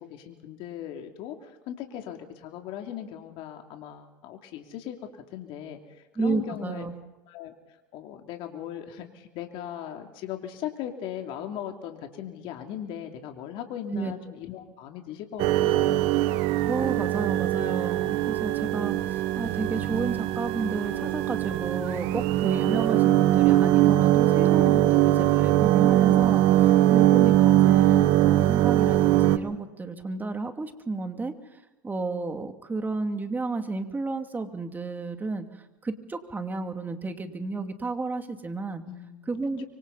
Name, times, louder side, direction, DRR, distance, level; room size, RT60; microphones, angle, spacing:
voice 1, 0.0-5.0 5.3-6.9 7.3-7.5 7.9-16.1 38.9-39.4, left 10 dB, 55° left, 4 dB, 2.9 m, -38 dB
voice 2, 6.2-6.9 13.9-14.1 16.7-38.8 39.3-39.6, right 3 dB, 15° right, 6 dB, 2.6 m, -32 dB
sound 1, 15.4-29.4, right 14 dB, 60° right, 1.5 m, -21 dB
25.5 x 24.5 x 4.2 m, 1.1 s
hypercardioid pair, 90°, 11 cm